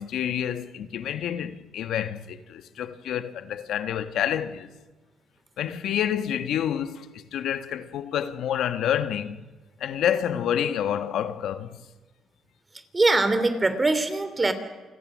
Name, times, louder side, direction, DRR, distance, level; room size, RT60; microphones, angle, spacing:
voice 1, 0.0-4.7 5.6-9.4 9.8-11.8, left 9 dB, 80° left, 1.2 m, -28 dB
voice 2, 12.9-14.5, right 2 dB, 20° right, 2.9 m, -22 dB
28.5 x 20.5 x 6.2 m
cardioid pair, 90°, 0 cm